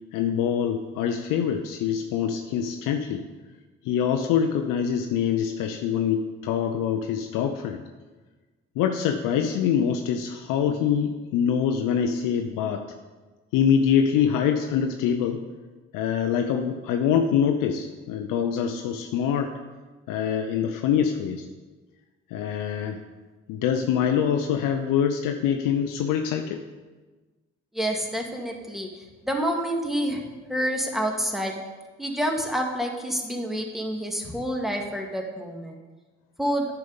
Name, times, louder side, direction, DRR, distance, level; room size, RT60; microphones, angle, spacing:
voice 1, 0.1-3.2 3.8-7.8 8.8-12.8 13.5-15.4 15.9-19.5 20.1-21.5 22.3-23.0 23.5-26.6, left 8 dB, 75° left, 6 dB, 0.6 m, -24 dB
voice 2, 27.7-30.2 30.5-31.6 32.0-35.8 36.4-36.7, equal, ahead, 1 dB, 1.9 m, -28 dB
9.3 x 5.9 x 5.3 m, 1.3 s
hypercardioid pair, 40°, 34 cm